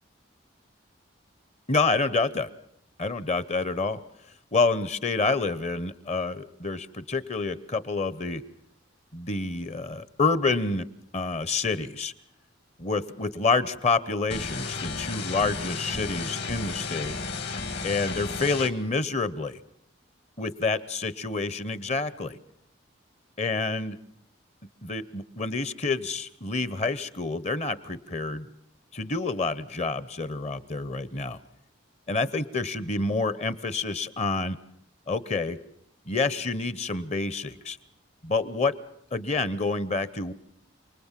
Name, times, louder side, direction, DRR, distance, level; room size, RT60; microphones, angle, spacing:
voice 1, 1.7-2.5 3.0-4.0 4.5-8.4 9.1-10.9 11.1-12.1 12.8-17.1 17.8-19.6 20.4-22.4 23.4-24.0 24.8-28.5 28.9-31.4 32.1-34.6 35.1-35.6 36.1-37.8 38.2-38.7 39.1-40.3, left 3 dB, 35° left, 16 dB, 0.9 m, -28 dB
sound 1, 14.3-18.7, left 4 dB, 60° left, 2.4 m, -33 dB
28.0 x 20.0 x 7.4 m, 0.71 s
head